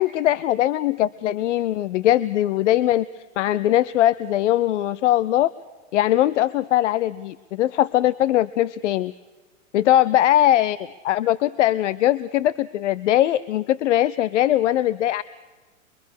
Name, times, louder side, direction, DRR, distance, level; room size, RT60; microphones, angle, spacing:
voice 1, 0.0-3.1 3.4-5.5 5.9-9.1 9.7-10.8 11.0-15.2, left 13 dB, 60° left, 18 dB, 0.7 m, -20 dB
24.0 x 23.5 x 6.5 m, 1.3 s
hypercardioid pair, 155°, 40 cm